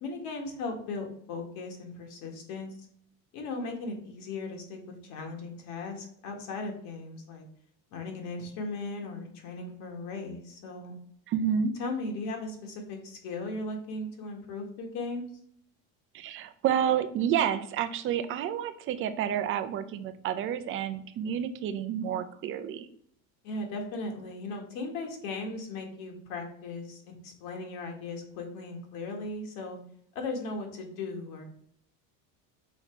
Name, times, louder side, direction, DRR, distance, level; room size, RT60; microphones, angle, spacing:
voice 1, 0.0-2.7 3.3-7.4 7.9-11.0 11.8-15.3 23.4-29.8 30.2-31.4, left 3 dB, 55° left, 3 dB, 1.8 m, -37 dB
voice 2, 11.3-11.7 16.1-22.9, right 9 dB, 30° right, 10 dB, 0.5 m, -29 dB
5.9 x 4.1 x 4.5 m, 0.65 s
cardioid pair, 155°, 39 cm